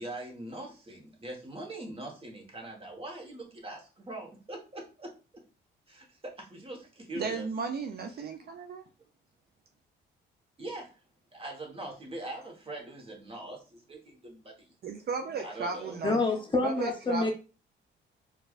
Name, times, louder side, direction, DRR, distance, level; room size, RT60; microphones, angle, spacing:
voice 1, 0.0-5.1 5.9-7.5 8.2-8.3 10.6-11.0 11.3-14.8 15.4-16.0, right 1 dB, 30° right, 1.2 m, -42 dB
voice 2, 7.1-8.8 14.8-16.2 16.6-17.3, right 5 dB, 55° right, 0.5 m, -35 dB
voice 3, 16.0-17.3, left 3 dB, 25° left, 0.7 m, -27 dB
4.4 x 2.4 x 2.4 m
cardioid pair, 90°, 20 cm